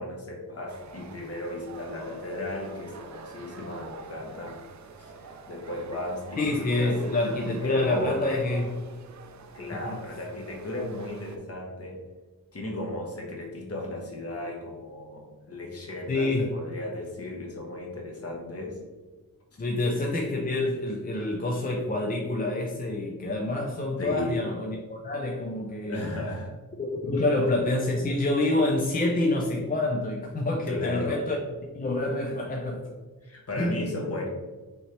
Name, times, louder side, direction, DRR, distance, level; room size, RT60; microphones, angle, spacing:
voice 1, 0.0-4.6 5.0-6.9 7.6-8.4 9.5-12.0 12.5-18.8 24.0-24.4 25.9-26.5 27.2-27.3 30.7-31.2 33.2-34.3, left 1 dB, 40° left, -1 dB, 1.1 m, -35 dB
sound 1, 0.7-11.4, right 4 dB, 50° right, 0.5 m, -46 dB
voice 2, 6.4-8.9 9.7-10.0 16.1-16.6 19.6-26.1 26.8-31.4 31.7-32.9 33.6-33.7, left 2 dB, 25° left, 0 dB, 0.4 m, -27 dB
5.5 x 2.9 x 3.2 m, 1.2 s
wide cardioid pair, 165°, 36 cm